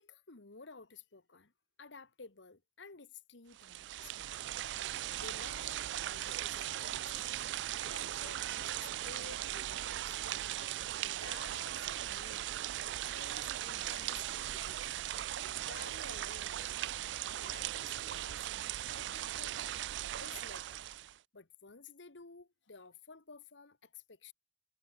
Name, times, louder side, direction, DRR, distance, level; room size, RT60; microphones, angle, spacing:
voice 1, 0.0-1.5 1.8-4.4 5.2-7.4 7.8-10.3 10.7-12.5 12.8-15.0 15.6-16.8 17.2-19.8 20.2-20.8 21.3-24.3, left 4 dB, 75° left, 1.6 m, -54 dB
sound 1, 3.5-21.2, right 13 dB, 70° right, 0.3 m, -39 dB
head